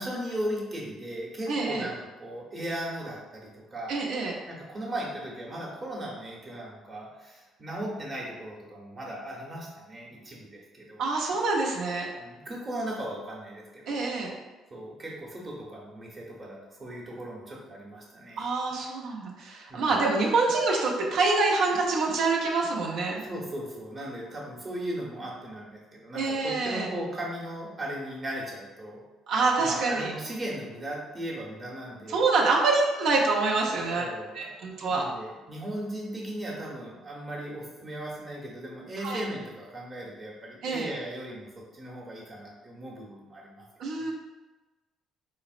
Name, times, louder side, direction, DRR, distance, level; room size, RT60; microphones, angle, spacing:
voice 1, 0.0-4.0 4.5-11.0 12.2-14.1 14.7-18.5 19.7-19.9 23.2-29.0 29.6-32.2 33.9-43.7, right 1 dB, 30° right, -4 dB, 0.9 m, -37 dB
voice 2, 1.5-1.9 3.9-4.4 11.0-12.1 13.9-14.3 18.4-23.2 26.1-26.9 29.3-30.1 32.1-34.0 34.3-35.0 39.0-39.2 40.6-40.9 43.8-44.1, right 3 dB, 70° right, -1 dB, 0.6 m, -26 dB
3.9 x 2.1 x 2.4 m, 1.2 s
cardioid pair, 120°, 0 cm